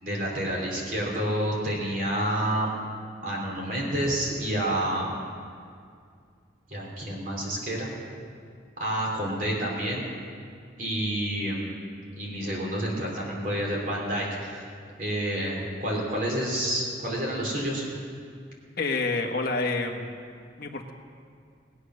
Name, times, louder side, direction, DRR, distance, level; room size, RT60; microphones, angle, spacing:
voice 1, 0.0-2.7 3.2-5.1 6.7-7.9 8.8-10.0 10.8-11.7 12.1-14.6 15.0-17.9, right 1 dB, 45° right, -3 dB, 3.4 m, -29 dB
voice 2, 18.8-20.1 20.6-20.9, left 3 dB, 50° left, 2 dB, 1.2 m, -28 dB
20.0 x 8.2 x 6.4 m, 2.2 s
head